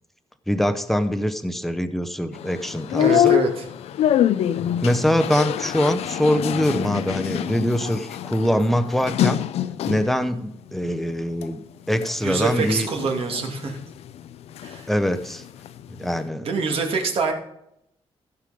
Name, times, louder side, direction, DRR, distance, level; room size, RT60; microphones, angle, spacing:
voice 1, 0.5-3.4 4.8-9.4 9.9-11.6 11.9-12.9 14.9-15.4 15.9-16.5, equal, ahead, 9 dB, 0.8 m, -23 dB
sound 1, 2.3-10.2 10.7-11.5 11.9-14.8 15.1-16.3, left 11 dB, 85° left, 0.5 m, -25 dB
voice 2, 3.0-3.7 12.2-13.8 14.6-14.9 16.4-17.3, right 4 dB, 65° right, 3 dB, 2.2 m, -25 dB
15.0 x 5.6 x 5.0 m, 0.78 s
cardioid pair, 115°, 10 cm